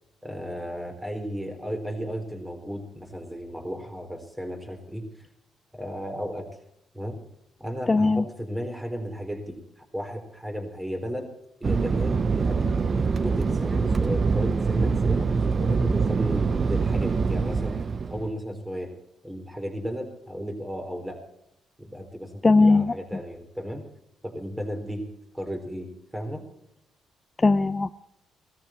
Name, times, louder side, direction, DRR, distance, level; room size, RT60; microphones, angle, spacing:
voice 1, 0.2-5.3 5.7-6.5 6.9-7.2 7.6-11.3 11.6-12.6 13.2-15.3 15.6-17.8 18.1-18.9 19.2-21.2 21.8-23.9 24.2-25.0 25.3-26.4, equal, 10° right, 4 dB, 4.0 m, -34 dB
voice 2, 7.9-8.2 22.4-22.9 27.4-27.9, left 3 dB, 25° left, 10 dB, 0.6 m, -19 dB
Fixed-wing aircraft airplane, 11.6-18.3, right 4 dB, 40° right, 0.7 m, -24 dB
17.5 x 13.5 x 4.5 m, 0.78 s
cardioid pair, 90°, 0 cm